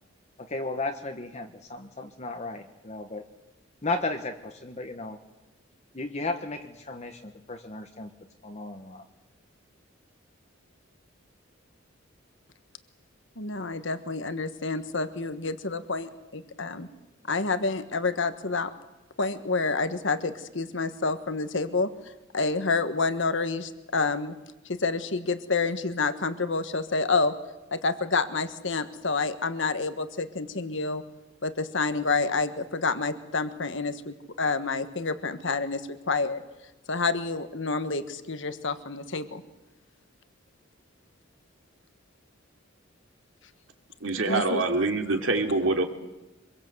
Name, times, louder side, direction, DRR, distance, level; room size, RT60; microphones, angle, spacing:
voice 1, 0.4-3.2 3.8-5.2 5.9-8.1 8.4-9.0, left 2 dB, 35° left, 4 dB, 1.4 m, -34 dB
voice 2, 13.4-16.9 17.3-18.7 19.2-21.9 22.3-24.3 24.7-27.3 27.7-31.0 31.4-36.4 36.9-39.4 44.3-44.6, left 3 dB, 65° left, 10 dB, 1.5 m, -28 dB
voice 3, 44.0-45.8, right 3 dB, 75° right, 4 dB, 3.0 m, -25 dB
25.0 x 22.5 x 8.0 m, 1.0 s
head